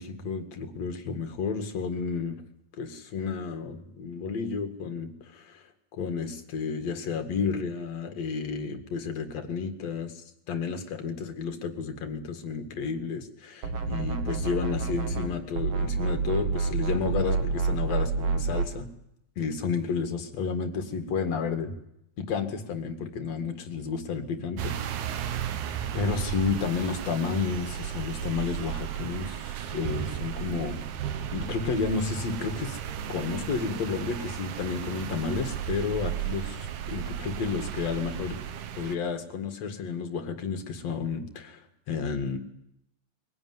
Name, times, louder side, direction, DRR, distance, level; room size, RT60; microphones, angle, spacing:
voice 1, 0.0-2.4 2.8-5.6 5.9-18.9 19.4-21.7 22.2-24.7 25.0-25.4 25.9-30.9 31.3-32.8 33.1-38.4 38.8-42.4, left 5 dB, 65° left, 6 dB, 3.0 m, -31 dB
sound 1, 13.6-15.3 15.5-18.7, right 4 dB, 55° right, 2.7 m, -28 dB
sound 2, 24.6-39.0, right 10 dB, 90° right, 2.6 m, -34 dB
22.5 x 16.5 x 9.6 m, 0.82 s
omnidirectional pair, 3.3 m